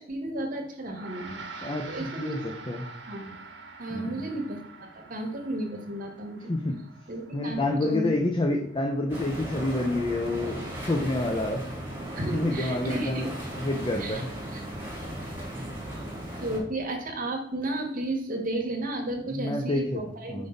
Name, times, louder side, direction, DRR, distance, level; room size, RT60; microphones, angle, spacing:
voice 1, 0.0-2.3 3.1-3.4 3.8-6.5 7.1-8.3 12.1-13.2 14.0-14.2 14.5-14.6 16.4-20.5, right 1 dB, 50° right, 2 dB, 1.5 m, -33 dB
Gong, 0.8-10.4, right 4 dB, 85° right, 1.3 m, -46 dB
voice 2, 1.6-2.4 2.7-2.9 3.9-4.3 6.5-6.8 7.3-11.6 12.3-14.3 16.3-16.6 19.3-20.0 20.3-20.5, left 2 dB, 30° left, 2 dB, 0.7 m, -28 dB
sound 1, 9.1-16.6, right 1 dB, 10° right, 2.2 m, -36 dB
5.5 x 5.3 x 3.9 m, 0.75 s
head